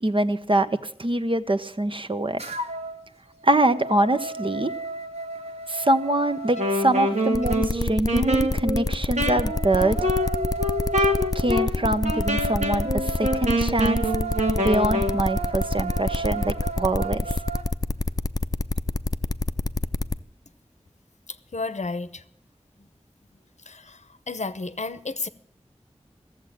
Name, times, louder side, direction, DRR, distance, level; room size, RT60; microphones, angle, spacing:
voice 1, 0.0-2.4 3.4-4.7 5.7-10.0 11.3-14.1 14.6-17.4, right 1 dB, 50° right, 0.9 m, -24 dB
sound 1, 2.4-3.0 3.4-7.6 9.1-17.7, right 3 dB, 65° right, 1.6 m, -34 dB
Wind instrument woodwind instrument, 6.5-15.2, equal, 90° right, 2.0 m, -26 dB
sound 2, 7.3-20.2, left 3 dB, 30° left, 0.5 m, -26 dB
voice 2, 21.5-22.1 23.7-24.0 24.3-25.3, left 3 dB, 80° left, 0.8 m, -31 dB
14.5 x 7.4 x 9.9 m
wide cardioid pair, 45°, 12 cm